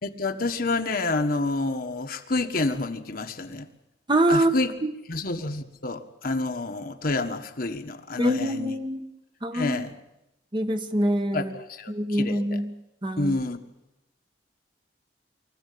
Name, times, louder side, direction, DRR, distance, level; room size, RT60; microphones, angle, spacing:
voice 1, 0.0-3.7 4.3-4.7 5.1-8.7 9.5-9.9 11.3-12.4 13.2-13.6, left 2 dB, 55° left, 6 dB, 1.5 m, -28 dB
voice 2, 4.1-4.9 8.2-9.1 9.4-9.8 10.5-11.5 11.9-12.7 13.0-13.4, right 1 dB, 25° right, 7 dB, 1.3 m, -25 dB
24.5 x 14.5 x 8.6 m, 0.92 s
head